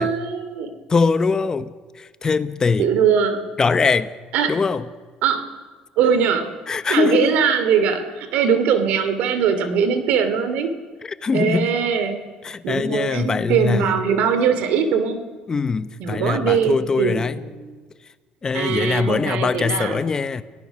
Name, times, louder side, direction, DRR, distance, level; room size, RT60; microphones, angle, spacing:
voice 1, 0.0-0.7 2.8-3.4 4.3-4.6 5.2-5.4 6.0-6.5 6.9-10.7 11.3-12.2 12.6-15.2 16.0-17.2 17.5-17.8 18.5-20.0, right 7 dB, 70° right, 10 dB, 2.6 m, -21 dB
voice 2, 0.9-2.9 3.6-4.2 4.5-4.8 6.7-7.4 11.0-11.7 12.4-14.0 15.5-17.4 18.4-20.4, left 5 dB, 25° left, 13 dB, 0.9 m, -22 dB
29.5 x 17.5 x 6.4 m, 1.4 s
cardioid pair, 110°, 3 cm